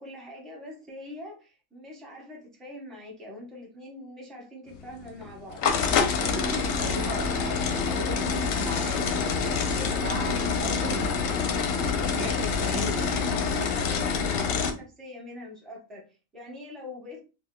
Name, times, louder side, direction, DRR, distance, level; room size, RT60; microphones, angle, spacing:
voice 1, 0.0-5.7 6.1-7.1 7.4-7.5 11.9-17.2, left 1 dB, ahead, 0.6 m, -43 dB
sound 1, 4.7-14.7, left 5 dB, 90° left, 1.0 m, -26 dB
voice 2, 6.2-11.2 11.8-13.2, right 2 dB, 75° right, 1.1 m, -37 dB
3.6 x 2.8 x 2.2 m
omnidirectional pair, 1.4 m